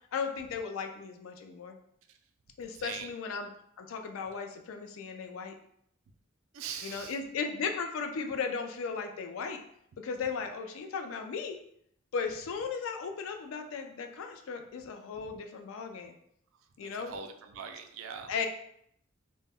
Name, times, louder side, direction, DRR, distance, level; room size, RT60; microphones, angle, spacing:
voice 1, 0.1-1.8 2.6-3.5 3.8-5.6 6.8-9.6 10.0-11.6 12.1-16.2 16.8-17.1 18.3-18.5, left 5 dB, 85° left, 5 dB, 0.4 m, -36 dB
voice 2, 2.7-3.1 6.5-7.2 15.1-15.3 16.8-18.5, right 6 dB, 80° right, 7 dB, 0.3 m, -42 dB
2.1 x 2.0 x 3.4 m, 0.71 s
head